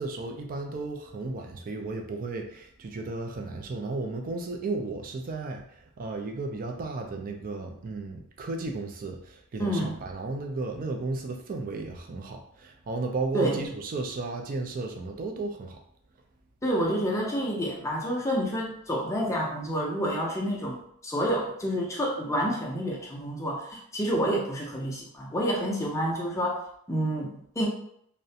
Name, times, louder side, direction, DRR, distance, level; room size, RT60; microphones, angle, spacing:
voice 1, 0.0-5.7 6.0-15.8, right 3 dB, 40° right, 3 dB, 0.3 m, -34 dB
voice 2, 9.6-10.0 13.3-13.6 16.6-27.7, equal, 15° left, -3 dB, 0.5 m, -29 dB
2.4 x 2.1 x 2.7 m, 0.67 s
head